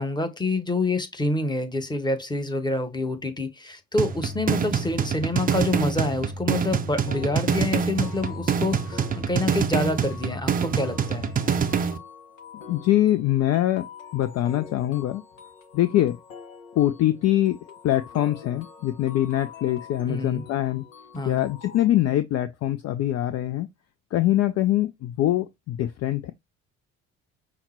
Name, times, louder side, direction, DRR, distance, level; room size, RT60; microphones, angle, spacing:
voice 1, 0.0-11.3 20.1-20.4 21.1-21.4, left 2 dB, 10° left, 1.1 m, -27 dB
sound 1, 4.0-12.0, right 6 dB, 20° right, 0.5 m, -26 dB
sound 2, 7.1-21.9, left 6 dB, 80° left, 0.8 m, -45 dB
voice 2, 12.7-13.9 14.1-15.2 15.7-16.2 16.8-17.6 17.8-20.8 21.3-23.7 24.1-26.3, left 13 dB, 40° left, 0.5 m, -23 dB
5.7 x 2.0 x 4.3 m
figure-of-eight pair, 50°, 39 cm